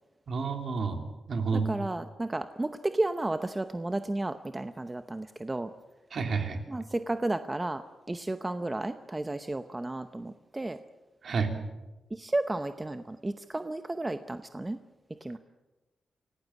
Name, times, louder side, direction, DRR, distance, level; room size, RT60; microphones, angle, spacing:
voice 1, 0.3-1.0 1.3-1.7 6.1-6.6 11.2-11.5, right 5 dB, 55° right, 5 dB, 3.3 m, -29 dB
voice 2, 1.5-5.7 6.7-10.8 12.1-14.8 15.2-15.4, right 2 dB, 15° right, 9 dB, 0.8 m, -33 dB
27.5 x 17.5 x 8.4 m, 1.1 s
wide cardioid pair, 150°, 0 cm